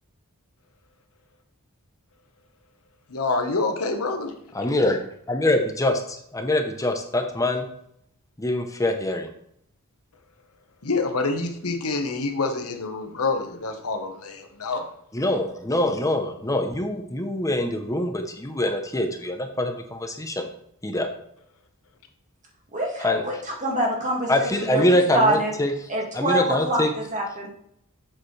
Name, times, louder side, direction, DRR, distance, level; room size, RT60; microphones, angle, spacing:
voice 1, 3.1-4.3 10.8-14.9, left 3 dB, 80° left, 5 dB, 1.2 m, -27 dB
voice 2, 4.5-7.7 8.4-9.3 15.1-20.5 20.8-21.1 23.0-23.2 24.3-25.7 26.1-26.9, left 1 dB, 15° left, 5 dB, 0.7 m, -24 dB
voice 3, 22.7-25.5 25.9-27.5, right 1 dB, 35° right, -1 dB, 2.0 m, -25 dB
7.6 x 6.7 x 3.2 m, 0.70 s
head